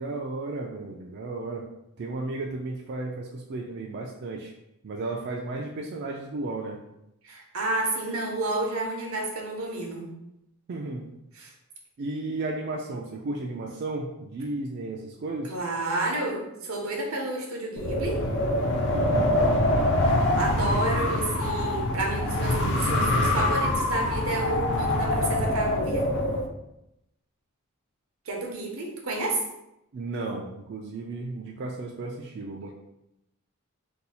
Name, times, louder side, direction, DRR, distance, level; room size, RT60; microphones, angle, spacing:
voice 1, 0.0-1.7 2.0-4.5 4.8-6.8 10.7-11.1 12.0-15.5 18.9-19.5 29.9-32.7, right 2 dB, 50° right, 0 dB, 0.3 m, -34 dB
voice 2, 7.2-10.1 11.4-11.5 15.5-18.3 20.3-26.1 28.3-29.4, right 2 dB, 85° right, 1 dB, 0.7 m, -30 dB
Wind, 17.8-26.5, left 1 dB, 55° left, 0.4 m, -24 dB
2.7 x 2.3 x 4.1 m, 0.87 s
head